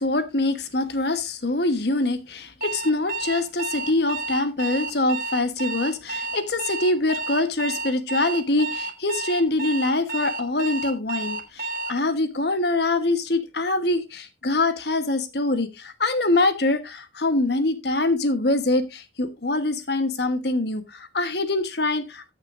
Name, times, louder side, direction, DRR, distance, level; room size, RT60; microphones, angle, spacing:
voice 1, 0.0-22.3, left 2 dB, 60° left, 10 dB, 1.2 m, -24 dB
Alarm, 2.6-12.0, right 3 dB, 45° right, 1.2 m, -31 dB
15.0 x 6.6 x 2.6 m, 0.23 s
head